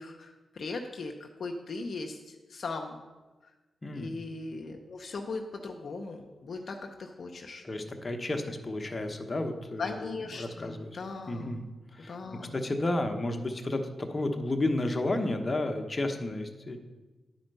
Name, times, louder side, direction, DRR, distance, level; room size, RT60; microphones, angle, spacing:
voice 1, 0.0-3.0 3.4-3.5 3.9-7.6 9.8-11.7 12.1-12.6, left 3 dB, 65° left, 2 dB, 0.7 m, -39 dB
voice 2, 7.6-10.1 10.3-11.0 11.3-11.6 11.9-12.2 12.5-16.8, left 2 dB, 35° left, 5 dB, 1.0 m, -32 dB
9.9 x 4.4 x 5.4 m, 1.2 s
cardioid pair, 55°, 0 cm